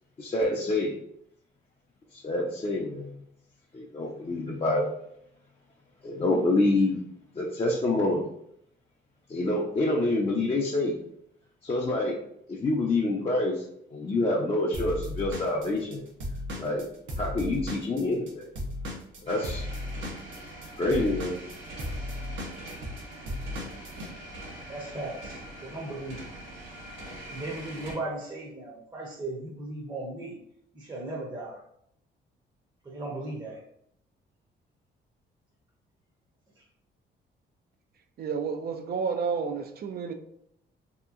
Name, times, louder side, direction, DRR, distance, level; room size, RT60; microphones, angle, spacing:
voice 1, 0.2-0.9 2.1-3.1 3.7-4.9 6.0-7.0 7.4-8.2 9.3-11.0 11.6-12.2 12.5-13.6 13.9-16.0 16.6-16.8 17.2-18.5 19.2-19.7 20.8-21.3, left 2 dB, 30° left, -3 dB, 0.5 m, -27 dB
Drum kit / Drum, 14.7-18.3 18.6-24.1, left 1 dB, 70° right, 0.8 m, -35 dB
sound 1, 19.3-27.9, right 1 dB, 85° right, 1.4 m, -43 dB
voice 2, 24.7-26.2 27.2-30.4 30.7-31.6 32.8-33.6, right 2 dB, 20° right, -3 dB, 0.7 m, -37 dB
voice 3, 38.2-40.1, right 5 dB, 50° right, 7 dB, 0.4 m, -30 dB
3.2 x 2.8 x 2.4 m, 0.72 s
cardioid pair, 90°, 20 cm